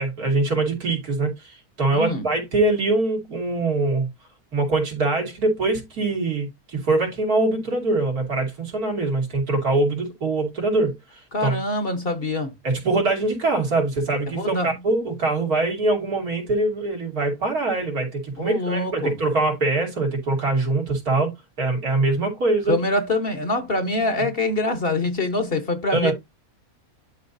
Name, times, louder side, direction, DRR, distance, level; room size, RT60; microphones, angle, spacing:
voice 1, 0.0-4.1 4.5-11.5 12.6-22.8 24.2-24.3 25.9-26.1, right 2 dB, 90° right, 3.1 m, -23 dB
voice 2, 1.9-2.3 11.3-12.5 14.3-14.7 18.4-19.1 22.7-26.1, left 2 dB, 40° left, 1.3 m, -24 dB
11.5 x 4.0 x 2.7 m
omnidirectional pair, 1.5 m